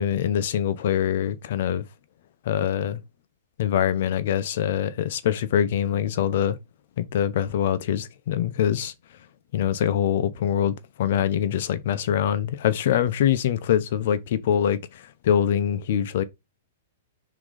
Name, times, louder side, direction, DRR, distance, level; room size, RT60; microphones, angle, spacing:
voice 1, 0.0-1.8 2.5-3.0 3.6-6.6 7.0-8.9 9.5-16.2, left 9 dB, 55° left, 0.9 m, -24 dB
5.9 x 3.8 x 5.0 m
hypercardioid pair, 160°, 0 cm